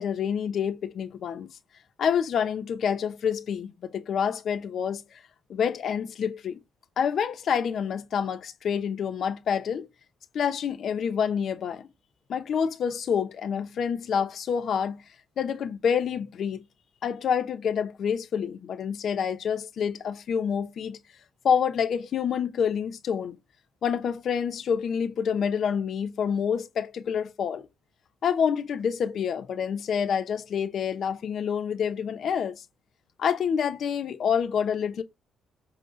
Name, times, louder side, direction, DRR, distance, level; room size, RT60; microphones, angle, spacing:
voice 1, 0.0-1.5 2.0-5.2 5.5-6.6 7.0-9.9 10.3-11.9 12.3-15.0 15.4-16.6 17.0-21.0 21.4-23.4 23.8-27.7 28.2-32.6 33.2-35.0, left 7 dB, 60° left, 0.9 m, -27 dB
7.9 x 3.1 x 5.1 m
cardioid pair, 90°, 0 cm